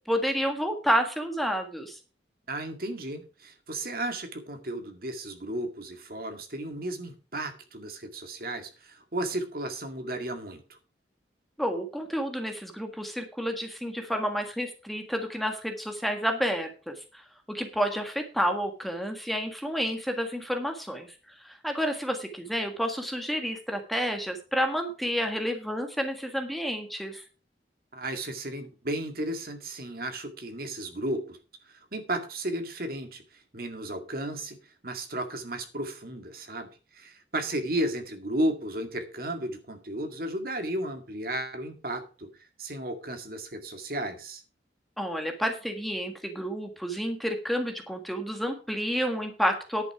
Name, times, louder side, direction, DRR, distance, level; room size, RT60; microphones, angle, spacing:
voice 1, 0.1-2.0 11.6-21.1 21.4-27.2 45.0-49.9, equal, ahead, 4 dB, 1.6 m, -30 dB
voice 2, 2.5-10.8 27.9-31.4 31.7-34.6 34.8-44.4, right 1 dB, 55° right, 6 dB, 2.1 m, -34 dB
10.5 x 9.3 x 4.7 m, 0.34 s
head